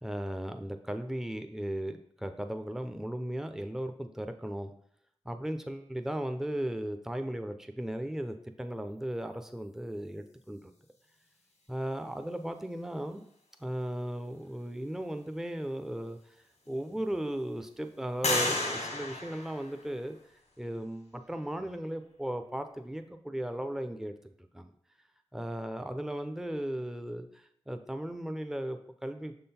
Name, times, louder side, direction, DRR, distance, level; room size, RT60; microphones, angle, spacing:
voice 1, 0.0-4.7 5.2-10.6 11.7-13.2 13.6-16.2 16.7-20.2 20.6-24.7 25.3-29.3, right 1 dB, 5° right, 7 dB, 0.6 m, -36 dB
sound 1, 16.0-16.1 16.6-17.3 18.2-20.2, left 2 dB, 85° left, 1.5 m, -33 dB
6.3 x 3.8 x 4.3 m, 0.65 s
cardioid pair, 45°, 11 cm